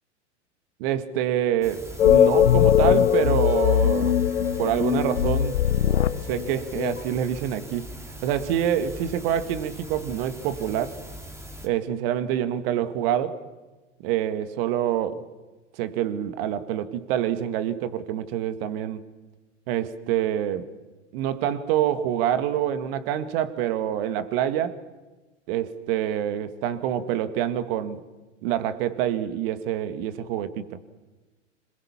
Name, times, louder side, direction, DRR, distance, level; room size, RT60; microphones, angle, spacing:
voice 1, 0.8-4.2 4.6-5.6 6.2-7.9 8.2-11.0 11.6-13.4 14.0-15.2 15.8-19.0 19.7-20.7 21.1-24.8 25.5-28.0 28.4-30.8, right 10 dB, 50° right, 12 dB, 1.9 m, -26 dB
sound 1, 1.6-11.7, equal, 5° right, 2.9 m, -41 dB
sound 2, 2.0-7.0, left 9 dB, 75° left, 1.1 m, -20 dB
26.5 x 21.5 x 7.3 m, 1.2 s
hypercardioid pair, 100°, 36 cm